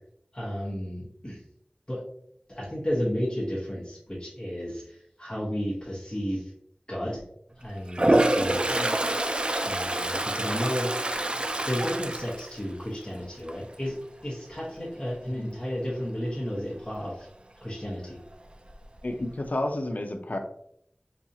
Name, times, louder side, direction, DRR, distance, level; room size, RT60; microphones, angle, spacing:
voice 1, 0.3-1.4 1.9-2.0 2.5-6.5 6.9-7.2 7.6-8.8 9.6-10.9 11.2-11.3 11.7-14.0 14.2-17.3 17.6-18.2, equal, 25° left, -7 dB, 1.1 m, -32 dB
Toilet flush, 7.9-13.1 13.5-13.9 18.3-18.4 18.7-19.4, right 1 dB, 35° right, 0.3 m, -26 dB
voice 2, 19.0-20.4, left 1 dB, 60° left, 5 dB, 0.5 m, -31 dB
4.3 x 2.4 x 2.7 m, 0.69 s
wide cardioid pair, 45°, 3 cm